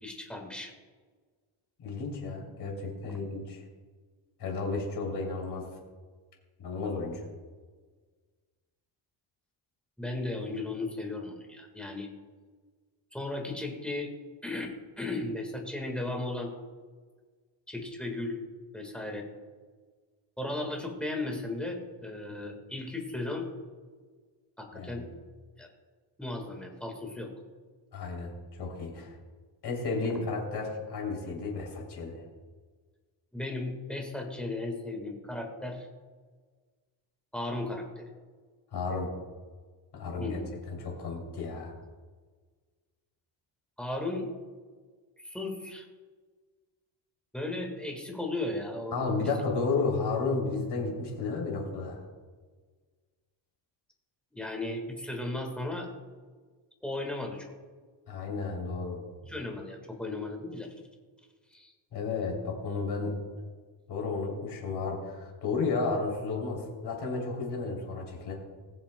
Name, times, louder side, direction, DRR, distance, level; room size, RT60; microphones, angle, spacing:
voice 1, 0.0-0.7 3.0-3.2 10.0-12.1 13.1-14.1 14.4-14.7 15.0-16.5 17.7-18.4 18.7-19.3 20.4-23.5 24.6-25.1 25.6-25.7 26.2-27.3 30.0-30.2 33.3-35.9 37.3-38.1 40.2-40.5 43.8-44.3 45.2-45.9 47.3-49.0 49.2-49.4 54.3-55.9 56.8-57.5 59.2-60.7 61.5-61.7, left 2 dB, ahead, 1 dB, 1.7 m, -35 dB
voice 2, 1.8-3.6 4.4-5.6 6.6-7.2 22.3-22.4 24.7-25.0 27.9-28.3 28.6-29.1 29.6-32.2 38.7-39.1 39.9-40.4 40.7-41.7 48.9-52.0 58.1-59.0 61.9-63.1 63.9-68.3, left 4 dB, 55° left, -1 dB, 3.2 m, -32 dB
20.5 x 7.2 x 2.3 m, 1.4 s
cardioid pair, 150°, 47 cm